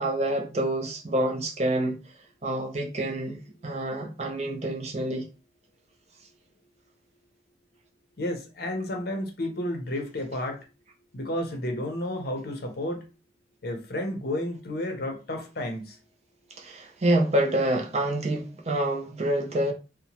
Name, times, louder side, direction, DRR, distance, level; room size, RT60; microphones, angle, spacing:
voice 1, 0.0-2.0 2.4-3.4 3.6-5.3 16.6-19.7, right 1 dB, 35° right, 0.5 m, -27 dB
voice 2, 8.2-10.6 11.1-13.0 13.6-16.0, left 1 dB, 50° left, 0.6 m, -31 dB
2.8 x 2.1 x 2.8 m
head